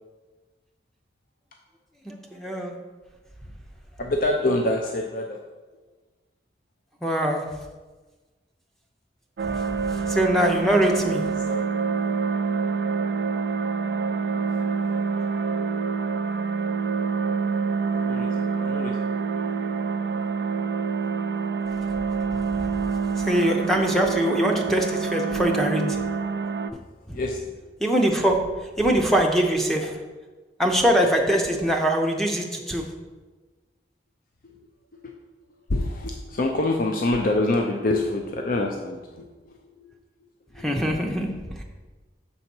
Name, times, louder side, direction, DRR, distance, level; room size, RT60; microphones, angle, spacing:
voice 1, 2.1-2.7 7.0-7.4 10.1-11.2 23.2-26.0 27.1-27.2 27.8-28.4 28.8-29.9 30.6-32.8 40.6-41.3 41.6-41.7, right 1 dB, ahead, 1 dB, 0.6 m, -22 dB
voice 2, 4.0-5.4 11.4-12.0 17.9-19.1 19.4-19.6 27.1-27.6 35.0-35.1 35.7-39.5 39.8-39.9 40.6-40.7, left 2 dB, 50° left, 2 dB, 0.5 m, -26 dB
sound 1, 9.4-26.7, right 5 dB, 60° right, 0.3 m, -26 dB
6.5 x 4.1 x 6.0 m, 1.3 s
head